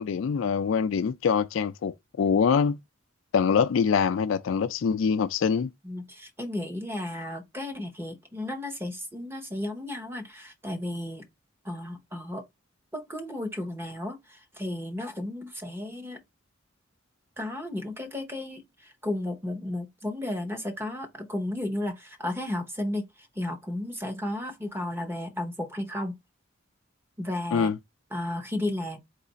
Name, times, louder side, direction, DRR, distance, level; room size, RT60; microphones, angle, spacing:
voice 1, 0.0-2.8 3.3-5.7 27.5-27.8, left 6 dB, 70° left, 0.3 m, -24 dB
voice 2, 5.8-11.2 11.6-12.4 12.9-16.2 17.4-26.2 27.2-27.7 28.1-29.0, left 1 dB, 10° right, 0.8 m, -33 dB
4.6 x 2.4 x 4.0 m
head